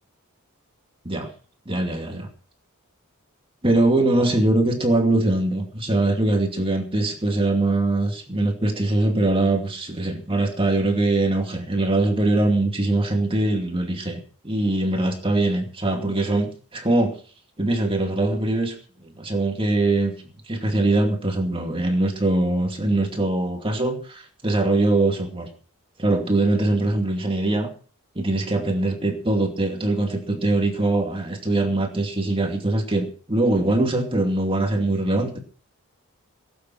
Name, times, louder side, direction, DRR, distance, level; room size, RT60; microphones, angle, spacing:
voice 1, 1.7-2.3 3.6-14.2 14.4-17.2 17.6-18.7 19.0-20.1 20.5-25.5 26.0-27.7 28.2-35.4, right 2 dB, 25° right, 3 dB, 2.5 m, -22 dB
18.0 x 8.9 x 6.0 m, 0.41 s
head